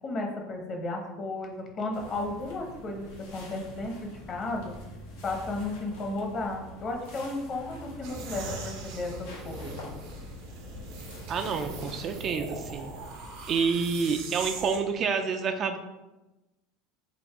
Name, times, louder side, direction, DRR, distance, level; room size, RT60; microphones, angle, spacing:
voice 1, 0.0-4.7 5.2-9.9 13.2-13.4, left 2 dB, 40° left, 2 dB, 1.0 m, -34 dB
sound 1, 1.9-13.1, left 1 dB, 85° left, 1.0 m, -46 dB
sound 2, 8.0-14.8, right 3 dB, 70° right, 0.8 m, -41 dB
voice 2, 11.3-12.9 13.5-15.8, right 5 dB, 40° right, 6 dB, 0.4 m, -28 dB
4.0 x 2.5 x 4.6 m, 1.0 s
supercardioid pair, 105°, 0 cm